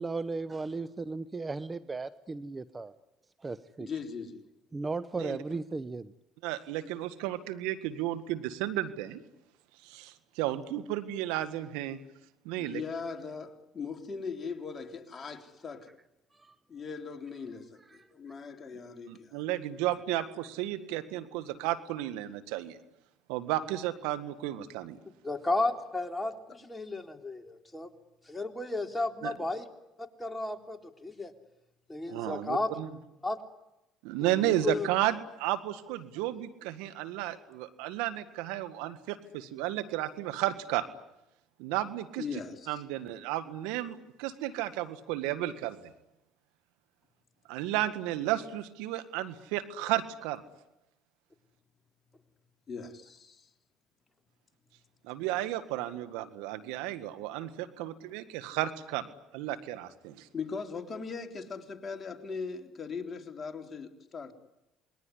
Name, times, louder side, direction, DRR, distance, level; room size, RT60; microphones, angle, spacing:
voice 1, 0.0-2.9 3.4-3.9 4.7-6.1 16.3-16.6 18.0-18.1, right 3 dB, 25° right, 0.9 m, -36 dB
voice 2, 3.8-4.5 12.5-15.9 16.7-19.4 42.2-42.8 52.7-53.5 60.3-64.3, left 5 dB, 35° left, 3.6 m, -39 dB
voice 3, 6.4-9.2 9.8-12.0 12.4-12.8 19.1-22.8 23.3-25.0 29.2-29.3 32.1-32.9 34.0-40.8 41.6-42.2 42.7-45.9 47.5-50.4 55.0-60.3, right 14 dB, 80° right, 1.7 m, -33 dB
voice 4, 25.2-27.9 28.3-29.7 30.0-31.3 31.9-32.7 33.2-33.4 34.2-34.9, left 2 dB, 15° left, 3.6 m, -33 dB
28.0 x 21.5 x 9.9 m
hypercardioid pair, 70°, 0 cm